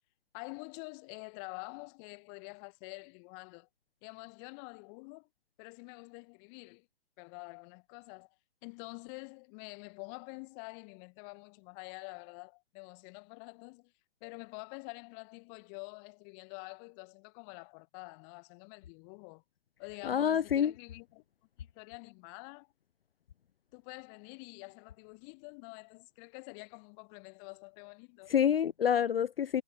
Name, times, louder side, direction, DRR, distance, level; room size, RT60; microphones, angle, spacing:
voice 1, 0.3-3.7 4.0-5.3 5.6-6.9 7.2-8.3 8.6-13.9 14.2-19.4 19.8-21.2 21.6-22.7 23.7-28.3, left 40 dB or more, 25° left, 1.4 m, -47 dB
voice 2, 20.0-20.7 28.3-29.6, left 9 dB, 55° left, 0.7 m, -27 dB
figure-of-eight pair, 125°, 34 cm